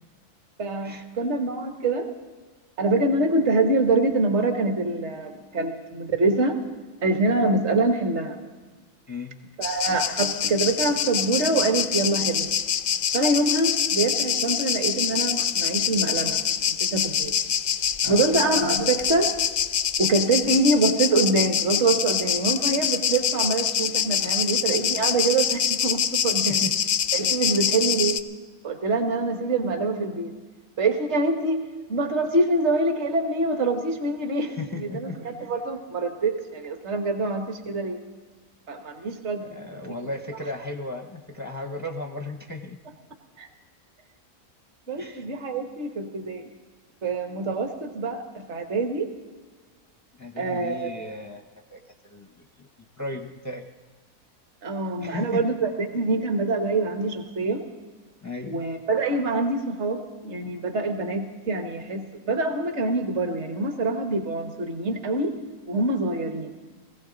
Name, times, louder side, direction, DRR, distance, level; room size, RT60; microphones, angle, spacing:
voice 1, 0.6-2.1 2.8-6.6 7.0-8.4 9.6-12.5 13.1-17.3 18.1-19.3 20.0-26.6 27.1-28.2 28.6-30.4 30.8-31.6 31.9-38.0 38.7-39.5 43.4-43.5 44.9-46.5 47.0-49.1 50.4-50.9 54.6-57.6 58.4-65.3 65.7-66.5, right 2 dB, 50° right, 5 dB, 1.5 m, -25 dB
sound 1, 9.6-28.2, left 8 dB, 90° left, 0.4 m, -25 dB
voice 2, 34.4-35.2 39.5-42.8 45.0-45.3 50.2-51.4 51.7-52.7 53.0-53.7 55.0-55.4 58.2-58.6, left 2 dB, 20° left, 3 dB, 0.4 m, -35 dB
20.0 x 15.5 x 3.9 m, 1.4 s
omnidirectional pair, 1.5 m